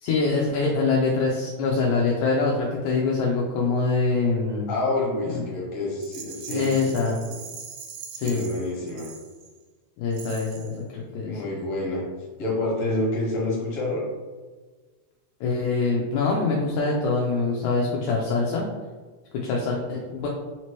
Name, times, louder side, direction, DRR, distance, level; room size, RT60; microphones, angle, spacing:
voice 1, 0.0-4.7 5.3-5.4 6.5-7.2 8.1-8.4 10.0-11.4 15.4-18.7 19.4-20.3, left 4 dB, 80° left, -3 dB, 1.8 m, -24 dB
voice 2, 4.7-6.8 7.2-7.4 8.2-9.1 11.3-12.0 12.4-14.0, left 2 dB, 55° left, -4 dB, 2.0 m, -28 dB
Rattle, 6.0-9.6 10.1-10.8, right 6 dB, 90° right, 1.5 m, -41 dB
5.0 x 2.9 x 3.0 m, 1.4 s
omnidirectional pair, 3.7 m